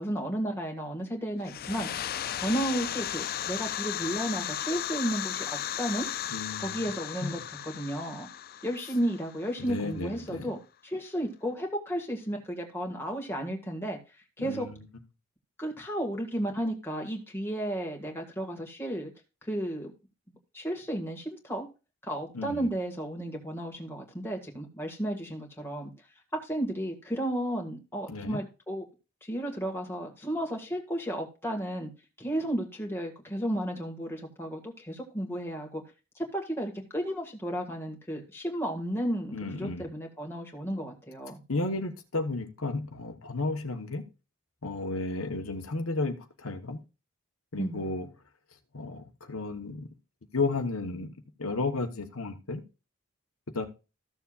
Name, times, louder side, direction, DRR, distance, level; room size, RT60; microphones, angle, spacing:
voice 1, 0.0-1.9 2.4-6.1 6.6-8.3 8.6-14.0 14.4-14.7 15.6-19.1 19.4-19.9 20.3-21.7 22.0-25.9 26.4-28.8 29.2-31.9 32.2-35.8 36.2-41.4 47.6-47.9, right 1 dB, 10° left, 1.8 m, -33 dB
sound 1, 1.4-10.0, left 11 dB, 40° left, 0.4 m, -35 dB
voice 2, 6.3-6.8 7.2-7.3 9.6-10.5 14.4-14.7 22.3-22.7 28.1-28.4 39.3-39.8 41.5-44.1 44.6-46.8 47.5-48.1 48.7-49.9 50.3-52.6 53.5-53.7, left 3 dB, 70° left, 1.1 m, -33 dB
14.0 x 7.0 x 2.4 m
head